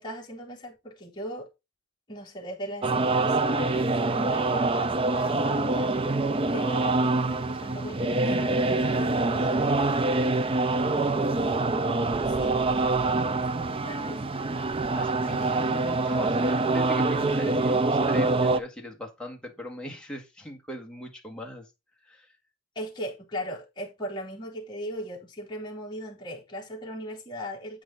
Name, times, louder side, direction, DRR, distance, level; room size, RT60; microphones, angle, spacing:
voice 1, 0.0-1.5 2.1-9.8 12.2-13.1 13.8-14.2 22.7-27.8, equal, 20° left, 3.5 m, -38 dB
sound 1, 2.8-18.6, right 3 dB, 25° right, 0.5 m, -25 dB
voice 2, 14.9-21.7 22.0-22.3, left 1 dB, 5° left, 1.7 m, -39 dB
8.5 x 6.1 x 3.9 m
head